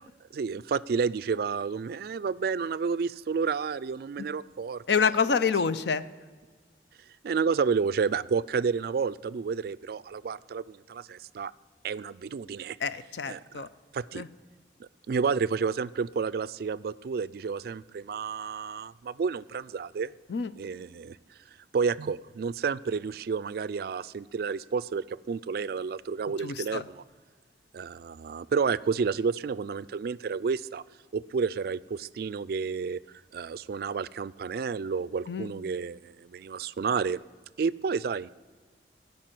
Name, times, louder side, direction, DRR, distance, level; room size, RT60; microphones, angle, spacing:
voice 1, 0.3-5.1 7.2-11.5 11.8-12.8 13.3-13.4 13.9-14.2 14.8-20.1 20.6-21.2 21.7-27.0 27.7-30.8 31.1-33.0 33.3-37.2 37.6-38.3, right 5 dB, 55° right, 19 dB, 0.3 m, -30 dB
voice 2, 4.9-6.0 12.8-13.7 14.1-14.3 20.3-20.5 26.4-26.8 35.3-35.5, left 6 dB, 70° left, 14 dB, 0.5 m, -27 dB
16.0 x 5.4 x 7.6 m, 1.5 s
head